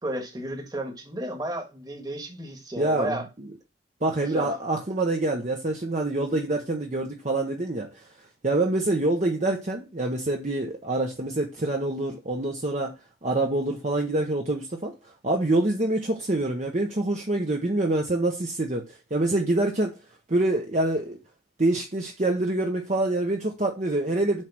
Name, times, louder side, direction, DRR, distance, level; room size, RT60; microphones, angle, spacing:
voice 1, 0.0-3.3 4.2-4.5, right 1 dB, 20° right, 1.5 m, -32 dB
voice 2, 2.8-3.2 4.0-8.0 8.4-12.9 13.2-14.9 15.2-19.9 20.3-21.2 21.6-24.4, right 2 dB, 40° right, 0.9 m, -26 dB
7.5 x 3.2 x 5.9 m
head